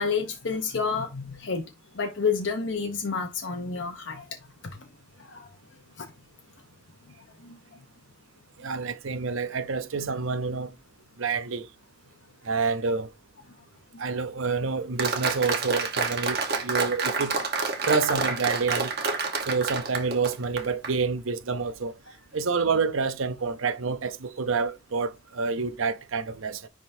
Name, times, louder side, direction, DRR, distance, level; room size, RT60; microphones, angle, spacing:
voice 1, 0.0-1.6 1.9-4.3 5.2-5.5 6.0-6.1 7.4-7.6 13.9-14.0, left 5 dB, 65° left, 0.9 m, -29 dB
voice 2, 8.6-10.7 11.2-11.7 12.4-13.1 14.0-17.4 17.9-18.9 19.5-21.9 22.3-26.7, right 4 dB, 80° right, 0.7 m, -28 dB
Applause, 15.0-20.9, right 4 dB, 50° right, 1.2 m, -28 dB
10.0 x 3.6 x 2.7 m
head